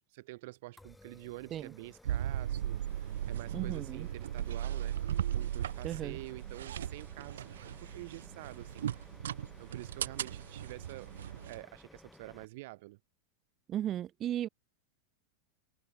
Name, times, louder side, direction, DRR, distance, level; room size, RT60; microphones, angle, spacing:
voice 1, 0.1-5.0 5.3-11.1 11.4-13.0, right 20 dB, 65° right, 0.9 m, -48 dB
sound 1, 0.8-12.4, left 2 dB, 5° left, 3.1 m, -58 dB
Interior Prius door open seat belt on away stop off, 2.0-11.6, right 10 dB, 80° right, 0.4 m, -37 dB
voice 2, 3.5-4.1 5.8-6.2 13.7-14.5, right 11 dB, 35° right, 2.1 m, -36 dB
hypercardioid pair, 110°, 0 cm